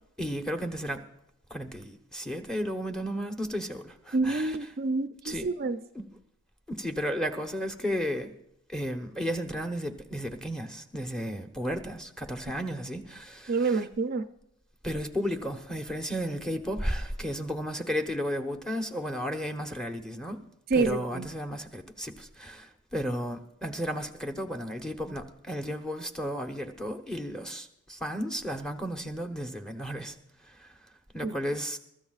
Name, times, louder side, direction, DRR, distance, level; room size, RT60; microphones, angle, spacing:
voice 1, 0.2-1.0 1.5-4.6 5.2-5.5 5.9-6.0 6.7-8.3 8.7-13.8 14.8-20.4 20.7-30.1 30.6-30.7 31.1-31.8, equal, 5° left, 1.0 m, -33 dB
voice 2, 4.1-5.8 13.5-14.3 20.7-21.3 31.2-31.3, right 3 dB, 45° right, 0.5 m, -28 dB
23.0 x 13.5 x 2.4 m
head